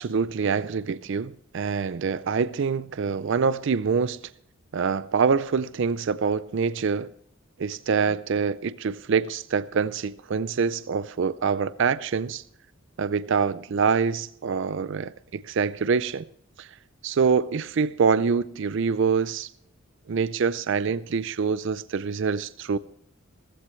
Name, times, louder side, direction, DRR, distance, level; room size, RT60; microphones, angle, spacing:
voice 1, 0.0-4.2 4.7-7.1 7.6-12.4 13.0-16.2 16.6-16.7 17.0-19.5 20.1-22.8, right 5 dB, 55° right, 0.4 m, -25 dB
16.0 x 15.0 x 3.1 m
head